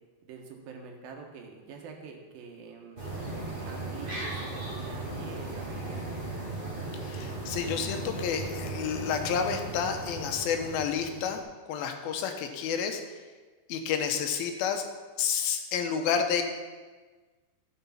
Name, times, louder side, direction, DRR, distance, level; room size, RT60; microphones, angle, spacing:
voice 1, 0.2-3.0 3.7-6.0, right 5 dB, 80° right, 2 dB, 3.1 m, -46 dB
sound 1, 3.0-11.4, right 2 dB, 20° right, 1.5 m, -37 dB
voice 2, 7.0-11.4 11.7-13.0 13.7-14.8 15.2-16.4, left 7 dB, 85° left, 6 dB, 2.8 m, -30 dB
13.5 x 6.9 x 5.8 m, 1.4 s
omnidirectional pair, 4.2 m